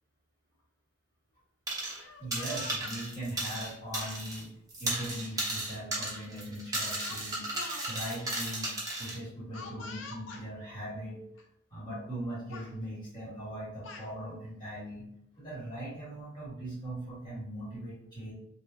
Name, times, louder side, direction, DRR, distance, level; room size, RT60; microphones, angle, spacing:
sound 1, 1.7-2.0 2.3-4.4 4.7-9.2, right 1 dB, 20° right, 0.7 m, -35 dB
Speech, 1.8-3.0 3.9-4.1 5.4-5.5 5.8-6.1 7.0-8.2 9.5-10.5 11.4-11.5 11.8-12.2 12.5-12.7 13.5-14.1, left 4 dB, 75° left, 0.5 m, -46 dB
voice 1, 2.2-4.5 4.8-7.4 7.9-11.2 11.7-15.0 15.4-18.3, right 1 dB, 20° left, -9 dB, 1.4 m, -40 dB
3.6 x 2.0 x 2.6 m, 0.76 s
head